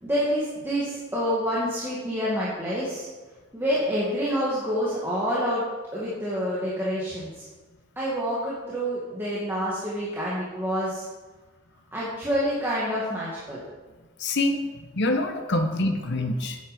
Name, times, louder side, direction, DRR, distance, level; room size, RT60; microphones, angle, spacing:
voice 1, 0.0-3.1 3.5-5.6 5.9-7.5 8.0-11.0 11.9-13.6, equal, 10° right, -8 dB, 2.0 m, -27 dB
voice 2, 14.2-14.6 14.9-16.6, left 2 dB, 60° left, 4 dB, 1.0 m, -25 dB
9.6 x 8.6 x 5.2 m, 1.3 s
head